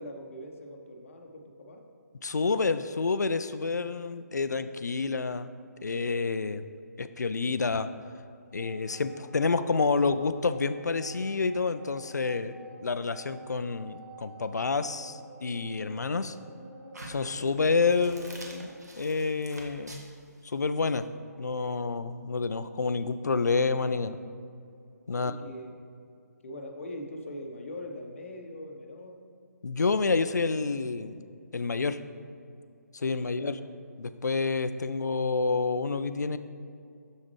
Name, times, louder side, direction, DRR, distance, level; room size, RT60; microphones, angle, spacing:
voice 1, 0.0-1.8 17.3-17.5 25.1-25.7 26.4-29.2 33.0-33.6, left 1 dB, 45° left, 2 dB, 0.8 m, -42 dB
voice 2, 2.2-5.5 5.8-6.7 7.0-7.9 8.5-12.5 12.8-16.4 17.1-18.7 19.0-20.0 20.5-21.0 21.4-24.2 25.1-25.3 29.6-31.2 31.5-32.0 32.9-33.6 34.0-36.4, left 4 dB, 70° left, 12 dB, 0.4 m, -28 dB
sound 1, 8.5-18.7, right 2 dB, 20° right, 1.3 m, -50 dB
sound 2, 16.9-21.0, right 2 dB, 65° right, 1.2 m, -47 dB
7.0 x 6.5 x 3.2 m, 2.4 s
figure-of-eight pair, 145°, 10 cm